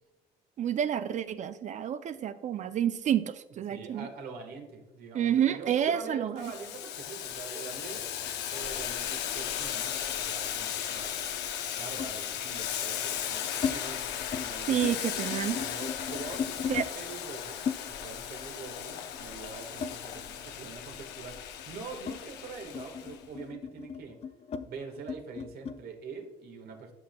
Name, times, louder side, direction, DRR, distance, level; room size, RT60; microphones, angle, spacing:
voice 1, 0.6-4.1 5.1-6.5 14.7-15.6 16.7-16.9, right 9 dB, 45° right, 12 dB, 0.4 m, -29 dB
voice 2, 3.7-8.1 8.5-11.2 11.7-15.0 15.5-17.6 17.9-24.2 24.6-26.9, right 4 dB, 65° right, 4 dB, 1.5 m, -44 dB
Boiling, 6.4-23.2, left 10 dB, 80° left, 0.7 m, -36 dB
sound 1, 9.1-10.7 12.0-12.2 13.0-13.8 14.1-14.5 14.7-16.9 17.7-20.5 20.8-25.8, left 6 dB, 40° left, 0.5 m, -38 dB
12.5 x 5.8 x 2.2 m, 1.0 s
cardioid pair, 110°, 17 cm